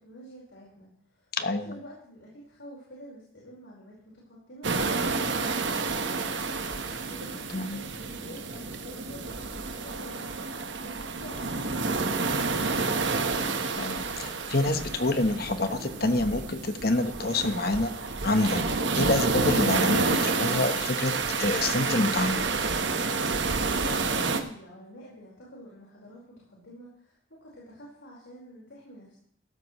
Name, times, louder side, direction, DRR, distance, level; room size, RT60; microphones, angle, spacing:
voice 1, 0.0-13.1 23.5-29.2, equal, 85° left, -5 dB, 4.7 m, -48 dB
voice 2, 1.3-1.7 7.5-7.8 13.7-17.9 18.2-18.6 19.0-21.1 21.4-22.5, left 2 dB, 50° left, 8 dB, 1.1 m, -27 dB
sound 1, 4.6-24.4, right 4 dB, 75° right, 1.2 m, -29 dB
15.0 x 13.0 x 3.1 m, 0.66 s
head